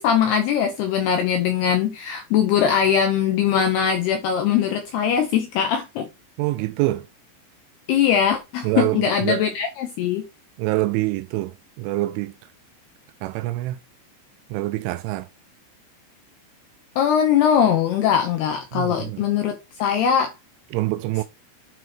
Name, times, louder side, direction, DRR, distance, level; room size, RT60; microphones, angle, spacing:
voice 1, 0.0-6.1 7.9-10.3 17.0-20.3, left 8 dB, 75° left, 2.4 m, -21 dB
voice 2, 6.4-7.1 8.6-9.4 10.6-12.3 13.2-13.8 14.5-15.3 18.7-19.2 20.7-21.2, right 18 dB, 85° right, 2.9 m, -25 dB
9.2 x 4.6 x 4.4 m
omnidirectional pair, 5.8 m